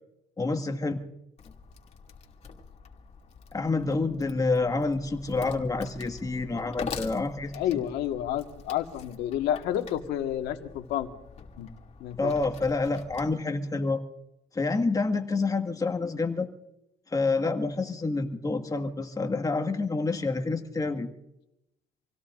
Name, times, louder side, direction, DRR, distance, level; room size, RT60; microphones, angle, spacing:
voice 1, 0.4-1.0 3.5-7.8 12.2-14.0 14.5-16.5 17.1-21.1, left 3 dB, 20° left, 5 dB, 1.9 m, -28 dB
Wood, 1.4-13.3, left 5 dB, 40° left, 2.4 m, -44 dB
voice 2, 7.5-11.1 11.6-11.7 12.0-12.3, left 11 dB, 85° left, 5 dB, 1.7 m, -30 dB
27.5 x 17.5 x 2.6 m, 0.86 s
cardioid pair, 110°, 17 cm